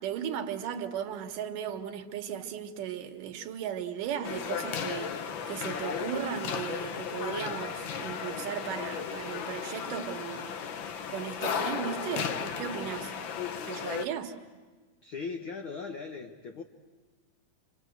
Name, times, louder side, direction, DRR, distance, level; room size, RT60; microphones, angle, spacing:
voice 1, 0.0-5.1 5.5-10.6 11.1-13.1 13.7-14.3, right 9 dB, 80° right, 2.9 m, -36 dB
sound 1, 4.2-14.1, left 7 dB, 80° left, 1.0 m, -35 dB
voice 2, 15.0-16.6, left 5 dB, 65° left, 1.3 m, -38 dB
27.5 x 26.0 x 8.0 m
omnidirectional pair, 3.7 m